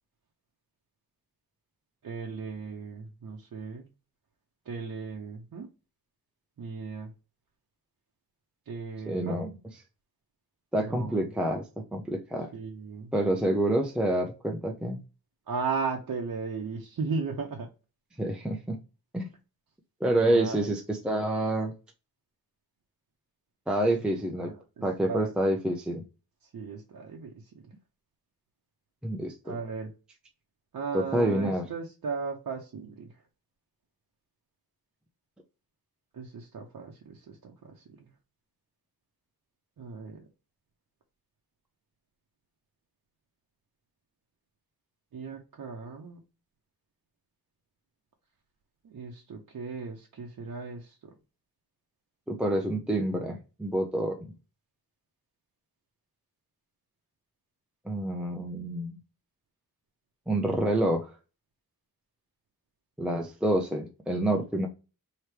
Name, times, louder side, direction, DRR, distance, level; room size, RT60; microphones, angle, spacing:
voice 1, 2.0-3.9 4.7-5.7 6.6-7.1 8.7-9.4 10.7-11.3 12.5-13.1 15.5-17.7 20.2-20.7 24.4-25.3 26.4-27.7 29.4-29.9 30.7-33.2 36.1-38.1 39.8-40.3 45.1-46.2 48.8-51.1, right 5 dB, 65° right, 0 dB, 0.7 m, -36 dB
voice 2, 9.1-9.5 10.7-12.5 13.1-15.0 18.2-18.8 19.1-19.3 20.0-21.7 23.7-24.5 24.8-26.0 29.0-29.6 30.9-31.6 52.3-54.2 57.9-59.0 60.3-61.1 63.0-64.7, right 1 dB, 5° right, 1 dB, 0.5 m, -28 dB
4.5 x 2.9 x 3.2 m, 0.32 s
wide cardioid pair, 155°, 36 cm